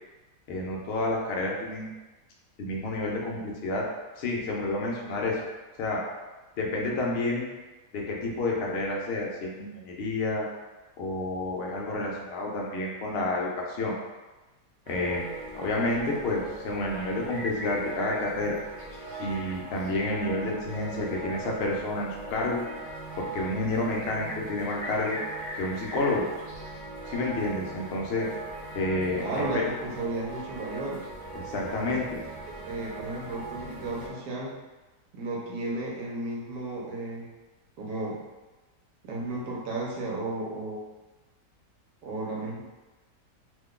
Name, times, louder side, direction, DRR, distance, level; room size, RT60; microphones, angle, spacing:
voice 1, 0.5-2.0 2.6-3.8 4.2-5.4 5.8-6.0 6.6-7.5 7.9-10.5 11.0-14.0 14.9-18.6 19.2-22.6 23.2-25.2 25.5-26.3 27.1-28.3 28.7-29.6 31.3-32.2, left 2 dB, 65° left, -2 dB, 0.6 m, -29 dB
sound 1, 14.9-34.1, right 2 dB, 60° right, 1.4 m, -39 dB
voice 2, 29.2-31.0 31.9-32.0 32.5-34.5 35.1-37.3 37.8-38.2 39.0-40.9 42.0-42.6, right 2 dB, 80° right, -3 dB, 1.3 m, -34 dB
3.0 x 2.2 x 3.6 m, 1.2 s
omnidirectional pair, 1.8 m